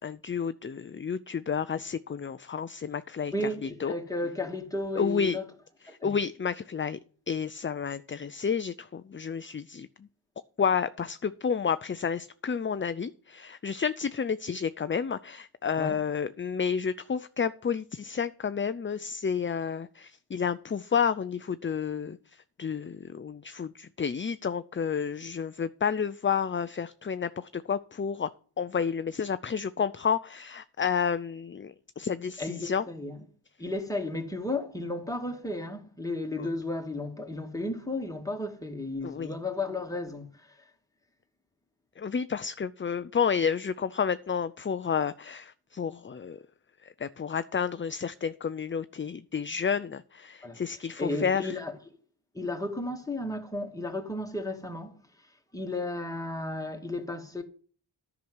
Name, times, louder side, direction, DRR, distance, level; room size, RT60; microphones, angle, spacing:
voice 1, 0.0-3.9 5.0-5.4 5.8-7.0 7.3-10.1 10.6-28.3 28.6-32.9 36.4-36.5 39.0-39.3 42.0-46.4 46.8-51.6, left 6 dB, 25° left, 0.4 m, -30 dB
voice 2, 3.3-5.4 5.9-6.1 15.8-16.0 32.4-33.2 33.6-40.6 50.4-50.6 51.0-51.7 52.3-55.0 55.5-57.4, left 2 dB, 5° left, 2.1 m, -33 dB
10.5 x 6.1 x 8.0 m
cardioid pair, 55°, 50 cm